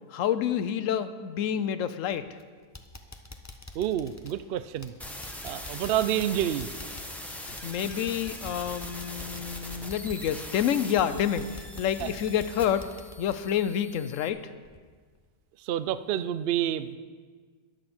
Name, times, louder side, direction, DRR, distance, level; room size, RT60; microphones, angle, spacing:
voice 1, 0.1-2.3 7.3-12.9 13.2-14.4, left 9 dB, 65° left, 12 dB, 0.9 m, -28 dB
sound 1, 2.1-2.4 2.7-14.3 14.6-14.8 15.3-15.4, left 2 dB, 20° left, 0.4 m, -46 dB
voice 2, 3.7-4.9 5.4-6.7 12.0-12.1 15.6-17.0, right 11 dB, 85° right, 13 dB, 0.5 m, -28 dB
sound 2, 5.0-14.3, left 1 dB, ahead, 0.8 m, -42 dB
22.0 x 7.7 x 4.4 m, 1.5 s
omnidirectional pair, 1.6 m